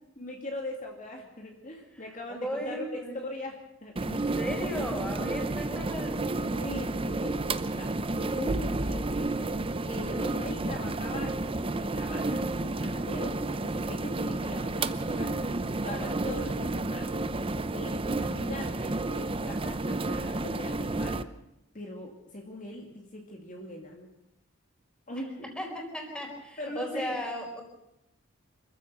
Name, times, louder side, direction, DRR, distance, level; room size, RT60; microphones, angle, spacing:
voice 1, 0.2-4.0 6.6-7.4 7.7-7.9 8.2-9.5 9.8-15.6 15.8-17.2 17.4-21.2 21.7-24.1 25.1-25.5 26.6-27.3, left 1 dB, 40° left, 1 dB, 2.5 m, -41 dB
voice 2, 2.4-3.1 4.0-6.2 10.1-10.4 25.6-27.6, equal, 5° left, 1 dB, 4.6 m, -36 dB
sound 1, 4.0-21.2, right 2 dB, 25° right, 0.7 m, -31 dB
26.5 x 15.0 x 6.8 m, 0.87 s
head